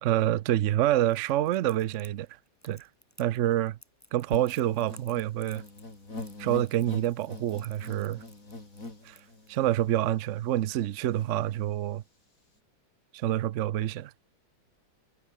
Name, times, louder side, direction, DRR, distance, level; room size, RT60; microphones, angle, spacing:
voice 1, 0.0-2.3 2.6-2.9 3.2-3.8 4.1-5.6 6.4-8.2 9.0-9.2 9.5-12.0 13.1-14.1, right 13 dB, 70° right, 0.7 m, -27 dB
Crackle, 1.1-9.6, equal, 10° left, 7.5 m, -57 dB
sound 1, 4.3-9.9 10.4-10.5 10.7-11.3, left 2 dB, 45° left, 5.5 m, -43 dB
omnidirectional pair, 2.0 m